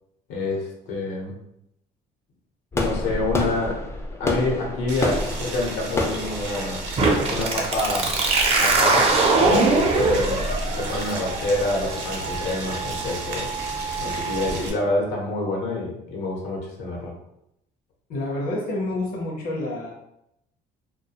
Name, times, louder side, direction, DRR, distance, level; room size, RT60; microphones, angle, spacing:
voice 1, 0.3-1.3 2.7-3.8 4.2-6.8 7.3-8.2 8.6-10.4 10.7-13.5 14.0-17.1, left 2 dB, 90° left, -1 dB, 0.8 m, -27 dB
sound 1, 2.7-7.7, left 2 dB, 15° left, 0.3 m, -28 dB
Boiling, 4.9-14.7, right 2 dB, 85° right, 0.6 m, -34 dB
sound 2, 7.0-14.5, right 3 dB, 35° right, 0.5 m, -23 dB
voice 2, 9.7-10.4 18.1-19.9, left 1 dB, 60° left, -2 dB, 0.6 m, -29 dB
2.2 x 2.2 x 2.8 m, 0.81 s
cardioid pair, 110°, 17 cm